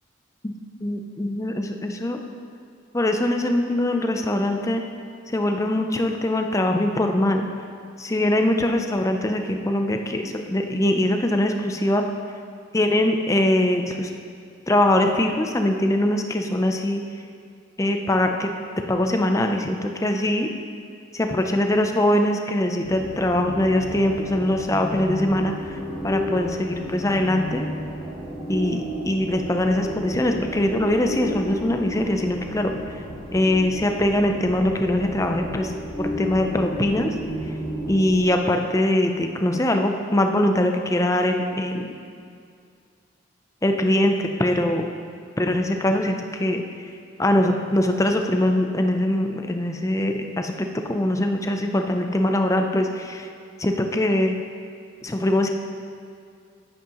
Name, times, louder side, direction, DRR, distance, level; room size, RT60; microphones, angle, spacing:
voice 1, 0.8-2.2 2.9-4.8 5.3-7.5 8.0-12.0 12.7-14.1 14.7-17.0 17.8-18.5 18.9-20.5 21.1-25.8 26.0-27.7 28.5-32.7 33.3-35.7 36.0-37.1 37.9-41.9 43.6-44.9 45.4-46.6 47.2-53.3 53.6-54.3 55.0-55.5, left 1 dB, 15° left, 4 dB, 0.5 m, -22 dB
sound 1, 22.8-38.2, equal, 5° right, 1.7 m, -32 dB
10.5 x 9.1 x 3.0 m, 2.3 s
head